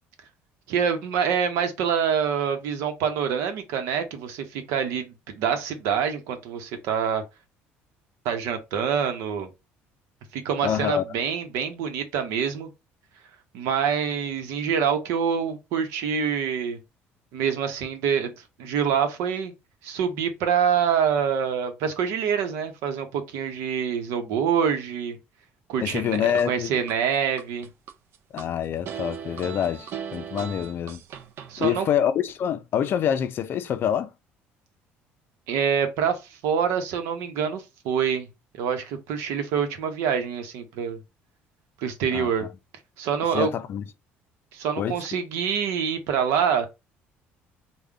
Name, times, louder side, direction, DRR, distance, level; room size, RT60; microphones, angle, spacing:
voice 1, 0.7-7.2 8.2-9.5 10.3-12.7 13.5-16.8 17.3-18.3 18.6-19.5 19.8-25.2 25.7-26.2 26.5-27.7 31.5-31.9 35.5-38.3 38.6-41.0 41.8-42.5 43.0-43.5 44.5-46.7, right 7 dB, 80° right, 0.8 m, -26 dB
voice 2, 10.6-11.0 25.8-26.7 28.3-31.0 31.6-34.1 42.1-42.5 43.3-43.8 44.8-45.0, left 9 dB, 50° left, 0.4 m, -26 dB
sound 1, 25.9-26.9 27.4-28.5 28.9-31.7, right 8 dB, 60° right, 0.4 m, -37 dB
3.6 x 2.2 x 3.3 m
cardioid pair, 115°, 5 cm